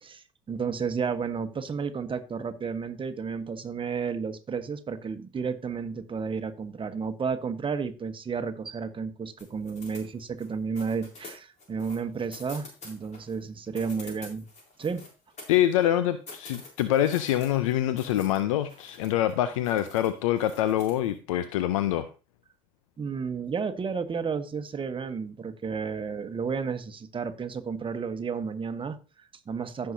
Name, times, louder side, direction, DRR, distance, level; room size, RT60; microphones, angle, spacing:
voice 1, 0.0-14.5 14.8-15.1 23.0-29.9, right 5 dB, 30° right, 8 dB, 1.2 m, -32 dB
sound 1, 9.4-10.5 10.8-13.4 13.7-15.9 16.3-18.4 18.7-19.3 19.6-21.1, left 3 dB, 45° left, 3.8 m, -47 dB
voice 2, 15.5-22.1, left 12 dB, 80° left, 12 dB, 0.5 m, -25 dB
15.0 x 5.7 x 2.7 m, 0.34 s
hypercardioid pair, 60°, 17 cm